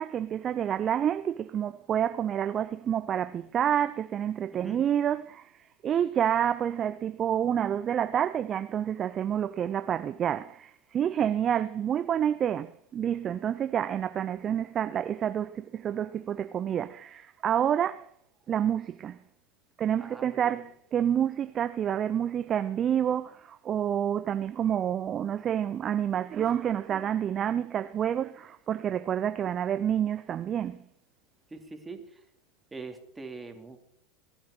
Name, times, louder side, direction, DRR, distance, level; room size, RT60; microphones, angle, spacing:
voice 1, 0.0-18.1 18.5-19.2 19.8-30.8, right 9 dB, 35° right, 0.5 m, -28 dB
voice 2, 4.5-4.8 20.0-20.6 31.5-32.2 32.7-33.8, right 3 dB, 15° right, 2.8 m, -43 dB
18.0 x 11.0 x 4.9 m
hypercardioid pair, 95°, 0 cm